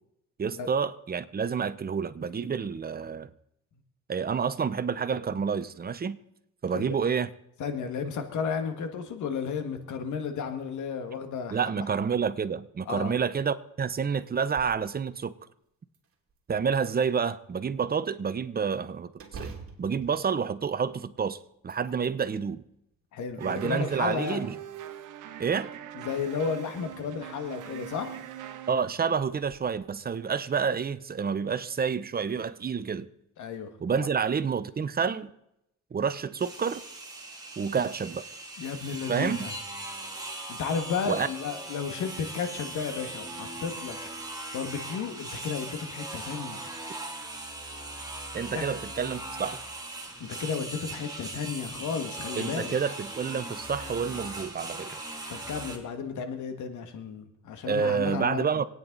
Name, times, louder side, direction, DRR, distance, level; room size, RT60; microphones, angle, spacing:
voice 1, 0.4-3.3 4.1-6.2 6.6-7.3 11.5-15.3 16.5-19.5 19.8-21.4 21.6-22.6 23.4-24.6 25.4-25.7 28.7-33.1 33.8-35.3 35.9-36.8 37.6-38.2 39.1-39.5 41.1-41.3 48.3-49.6 52.4-55.0 57.7-58.7, right 6 dB, 30° right, 0.8 m, -29 dB
voice 2, 7.6-11.6 12.9-13.1 23.1-24.5 26.0-28.1 33.4-34.1 38.6-39.5 40.5-44.0 44.5-46.6 48.5-48.6 50.2-52.8 55.3-58.5, left 6 dB, 75° left, 1.9 m, -33 dB
sound 1, 14.3-14.8 15.3-15.4 15.9-16.7 19.1-21.1 21.5-22.3 22.9-23.8 24.7-25.3 26.8-26.9 27.4-27.7 28.1-28.2 29.3-29.6, right 4 dB, 50° right, 2.5 m, -47 dB
sound 2, 23.4-28.7, right 11 dB, 90° right, 1.1 m, -42 dB
sound 3, 36.4-55.8, right 2 dB, 15° right, 2.7 m, -39 dB
25.5 x 9.1 x 4.0 m
cardioid pair, 90°, 30 cm